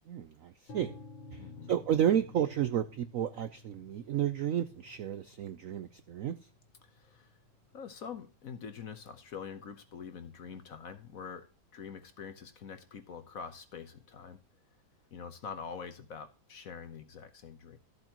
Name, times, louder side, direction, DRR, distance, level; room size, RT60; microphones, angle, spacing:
voice 1, 0.1-1.0 1.3-1.4 1.7-6.4, right 10 dB, 80° right, 0.7 m, -31 dB
sound 1, 0.7-8.6, left 3 dB, 90° left, 2.4 m, -53 dB
voice 2, 1.4-1.7 6.8-7.4 7.7-11.5 11.7-14.4 15.1-17.8, left 6 dB, 50° left, 1.2 m, -45 dB
13.5 x 7.9 x 2.9 m
omnidirectional pair, 2.1 m